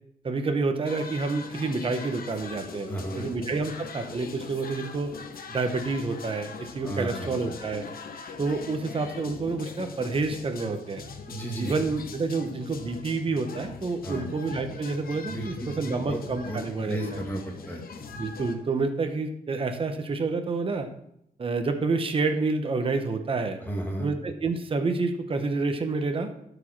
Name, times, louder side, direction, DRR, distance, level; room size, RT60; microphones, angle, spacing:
voice 1, 0.2-5.1 5.5-7.8 8.4-11.0 11.5-17.2 18.2-20.9 21.4-23.6 24.0-26.3, right 3 dB, 35° right, 6 dB, 0.9 m, -28 dB
sound 1, 0.8-18.5, left 5 dB, 70° left, 1.0 m, -41 dB
voice 2, 2.9-3.3 6.8-7.4 11.3-11.7 14.0-14.3 15.3-15.8 16.1-16.2 16.5-18.0 23.6-24.1, right 1 dB, 10° left, 0 dB, 2.0 m, -33 dB
12.5 x 5.1 x 6.0 m, 0.78 s
wide cardioid pair, 150°, 16 cm